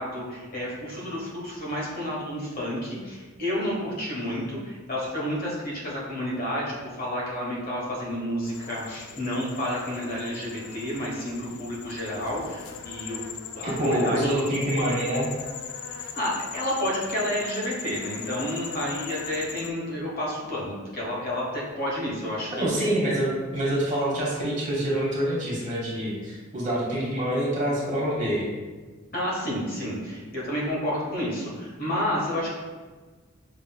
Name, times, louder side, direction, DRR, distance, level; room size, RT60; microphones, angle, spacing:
voice 1, 0.0-13.2 13.5-14.4 15.9-22.7 29.1-32.5, equal, 45° left, -5 dB, 1.1 m, -30 dB
sound 1, 8.4-19.7, left 7 dB, 90° left, 0.4 m, -40 dB
voice 2, 13.6-15.3 22.5-28.5, right 1 dB, 35° right, -5 dB, 1.1 m, -26 dB
5.6 x 3.0 x 2.3 m, 1.4 s
head